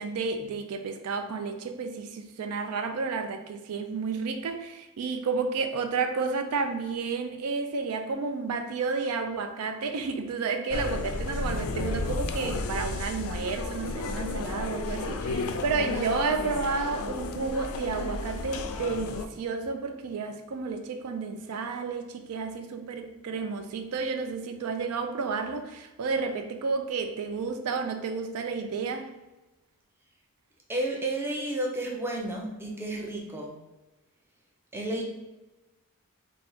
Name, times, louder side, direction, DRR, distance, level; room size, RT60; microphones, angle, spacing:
voice 1, 0.0-29.1, right 4 dB, 80° right, 0.4 m, -31 dB
sound 1, 10.7-19.3, left 3 dB, 70° left, 0.3 m, -33 dB
voice 2, 30.7-33.5 34.7-35.0, right 1 dB, 10° right, 0.5 m, -31 dB
3.4 x 2.3 x 3.8 m
head